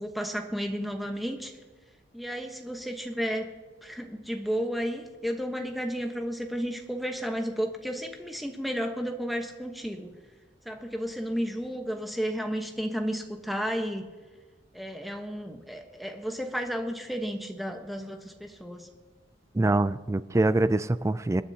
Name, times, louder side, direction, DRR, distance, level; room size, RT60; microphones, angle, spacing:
voice 1, 0.0-1.5 2.1-3.5 3.8-10.1 10.6-14.0 14.7-18.9, equal, ahead, 1.1 m, -32 dB
voice 2, 19.6-21.4, right 2 dB, 15° right, 0.3 m, -24 dB
26.0 x 9.9 x 2.8 m
head